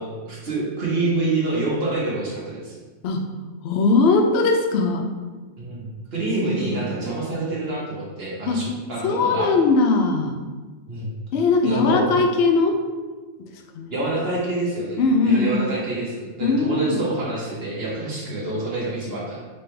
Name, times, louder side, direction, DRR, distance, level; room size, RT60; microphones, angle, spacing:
voice 1, 0.0-2.7 5.6-9.5 10.9-11.1 11.6-12.1 13.9-19.4, right 2 dB, 50° right, -5 dB, 1.2 m, -27 dB
voice 2, 3.6-5.1 6.3-6.9 8.5-8.6 9.0-10.4 11.3-12.8 13.7-13.9 15.0-15.7 16.4-17.0, left 3 dB, 65° left, 4 dB, 0.7 m, -20 dB
4.2 x 3.6 x 3.3 m, 1.3 s
omnidirectional pair, 1.5 m